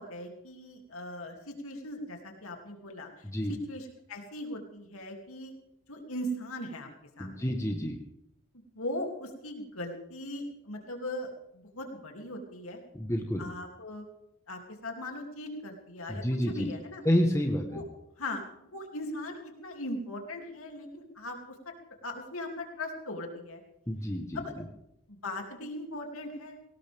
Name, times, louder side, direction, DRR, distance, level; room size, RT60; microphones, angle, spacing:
voice 1, 0.0-5.5 5.9-6.9 7.2-7.5 8.5-12.8 13.4-14.1 14.5-17.0 17.7-17.9 18.2-21.7 22.0-23.6 24.3-24.5 25.1-26.6, left 1 dB, 70° left, 3 dB, 2.8 m, -39 dB
voice 2, 7.2-8.0 13.0-13.4 16.1-16.7 17.0-17.8 23.9-24.4, equal, 15° left, 3 dB, 1.3 m, -29 dB
18.5 x 18.0 x 3.5 m, 0.82 s
head